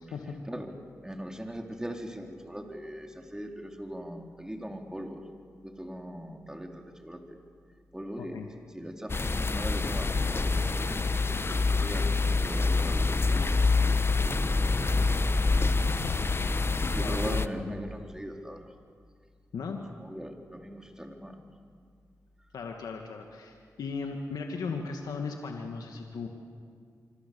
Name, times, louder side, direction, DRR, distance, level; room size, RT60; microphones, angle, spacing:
voice 1, 1.0-5.3 5.6-7.4 7.9-13.6 13.9-14.9 16.9-18.7 20.0-21.4 22.4-22.5, equal, 10° right, 2 dB, 4.0 m, -40 dB
sound 1, 9.1-17.5, left 3 dB, 40° left, 1.0 m, -26 dB
voice 2, 15.9-16.2 17.0-17.8 19.5-19.8 22.5-26.3, left 4 dB, 85° left, 3 dB, 1.9 m, -37 dB
26.5 x 25.0 x 7.1 m, 2.1 s
cardioid pair, 45°, 6 cm